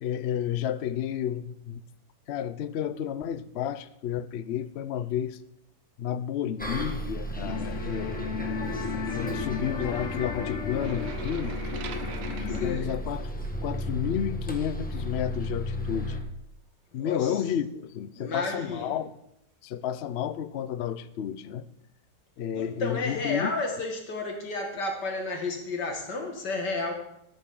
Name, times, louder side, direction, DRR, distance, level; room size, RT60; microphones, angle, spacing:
voice 1, 0.0-1.8 2.3-5.4 6.0-8.4 9.1-11.6 12.4-13.3 13.6-16.2 16.9-19.1 19.6-21.7 22.4-23.5, left 9 dB, 70° left, 14 dB, 0.6 m, -31 dB
Bus, 6.6-16.2, equal, 5° left, 1.2 m, -34 dB
sound 1, 7.4-12.7, left 5 dB, 50° left, 1.3 m, -34 dB
sound 2, 10.7-13.7, right 8 dB, 70° right, 1.3 m, -44 dB
voice 2, 12.5-12.9 16.9-17.4 18.1-19.0 22.5-26.9, left 3 dB, 85° left, 2 dB, 2.6 m, -32 dB
13.5 x 11.0 x 3.8 m, 0.79 s
omnidirectional pair, 1.8 m